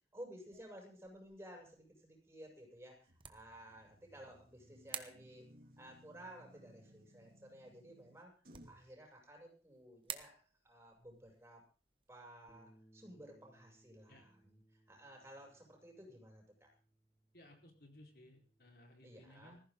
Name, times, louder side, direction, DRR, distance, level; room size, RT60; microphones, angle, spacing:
voice 1, 0.1-5.5 5.8-8.3 8.6-11.6 12.1-14.6 14.9-16.7 19.0-19.6, right 1 dB, 15° right, 0 dB, 7.4 m, -55 dB
sound 1, 0.5-14.7, right 8 dB, 30° right, 1.2 m, -56 dB
sound 2, 3.1-8.9, equal, 55° right, 2.7 m, -63 dB
Bass guitar, 12.5-18.7, right 1 dB, 20° left, 4.3 m, -69 dB
voice 2, 17.3-19.6, left 1 dB, 60° left, 3 dB, 4.7 m, -60 dB
20.0 x 15.5 x 3.9 m, 0.37 s
head